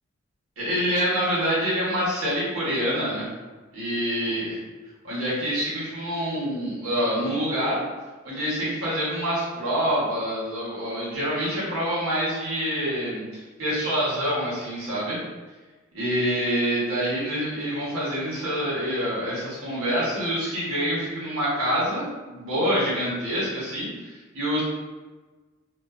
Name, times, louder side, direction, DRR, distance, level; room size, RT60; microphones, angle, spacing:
voice 1, 0.6-3.3 3.7-4.6 5.0-7.8 8.2-15.2 15.9-24.6, equal, 90° right, -8 dB, 1.0 m, -26 dB
2.4 x 2.2 x 2.3 m, 1.3 s
head